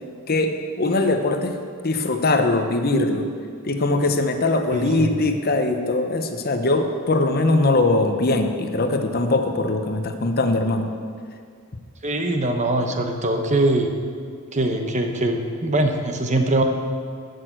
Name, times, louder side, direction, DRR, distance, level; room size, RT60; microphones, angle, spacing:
voice 1, 0.3-1.6 1.8-3.2 3.6-10.9, left 2 dB, 45° left, 6 dB, 0.8 m, -21 dB
voice 2, 4.7-5.1 12.0-13.9 14.5-16.6, right 2 dB, 30° right, 5 dB, 1.0 m, -22 dB
12.0 x 6.5 x 8.0 m, 2.2 s
head